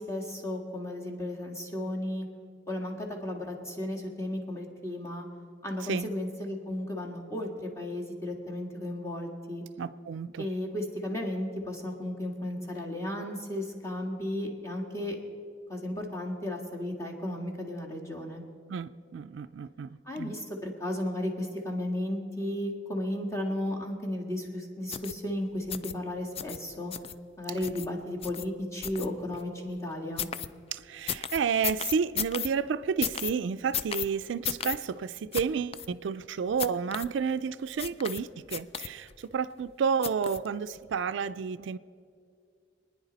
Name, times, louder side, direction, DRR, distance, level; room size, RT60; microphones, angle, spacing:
voice 1, 0.0-2.3 2.7-5.3 5.6-9.6 10.4-15.1 15.7-18.4 20.1-26.9 27.4-30.3, left 1 dB, 15° left, -1 dB, 1.7 m, -34 dB
voice 2, 9.8-10.5 18.7-20.3 30.7-41.8, right 6 dB, 75° right, 14 dB, 0.3 m, -31 dB
sound 1, 24.9-25.1 25.7-25.9 26.4-26.6 26.9-27.1 27.6-27.9 28.2-28.4 28.8-29.4 30.2-30.5 31.1-32.5 33.0-33.3 33.7-34.1 34.4-34.8 35.3-35.4 35.7-35.9 36.6-37.1 37.8-38.2 38.5-39.1 40.0-40.5 40.9-41.0, left 9 dB, 30° left, 0.3 m, -33 dB
26.5 x 9.9 x 4.0 m, 2.4 s
head